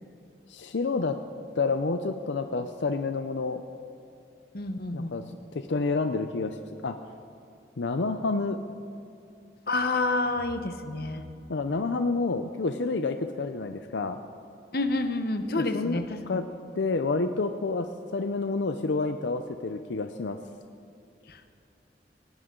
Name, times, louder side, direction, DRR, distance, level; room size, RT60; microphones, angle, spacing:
voice 1, 0.5-1.2 1.5-3.6 4.9-5.2 5.5-6.6 6.8-7.0 7.8-8.6 11.5-14.2 15.6-16.0 16.3-16.4 16.7-20.4, left 3 dB, 80° left, 8 dB, 0.6 m, -29 dB
voice 2, 4.5-5.1 9.7-11.2 14.7-16.4 21.3-21.5, left 2 dB, 55° left, 8 dB, 0.9 m, -29 dB
19.0 x 16.5 x 3.8 m, 2.7 s
head